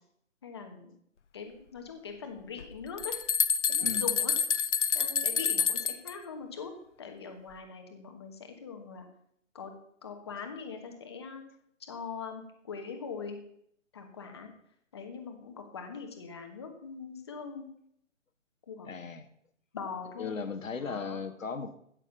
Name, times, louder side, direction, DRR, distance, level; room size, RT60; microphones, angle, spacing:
voice 1, 0.4-0.9 1.3-3.2 3.7-4.4 4.9-6.7 7.0-9.1 9.5-9.7 10.0-11.4 11.9-13.4 13.9-14.5 14.9-17.7 18.7-19.0 19.7-20.3 20.8-21.2, left 5 dB, 20° left, 5 dB, 1.3 m, -42 dB
sound 1, 2.6-2.7 3.0-6.1, left 7 dB, 65° left, 1.0 m, -28 dB
voice 2, 18.8-19.3 20.2-21.8, left 5 dB, 85° left, 8 dB, 1.8 m, -36 dB
16.0 x 6.7 x 6.6 m, 0.70 s
hypercardioid pair, 175°, 39 cm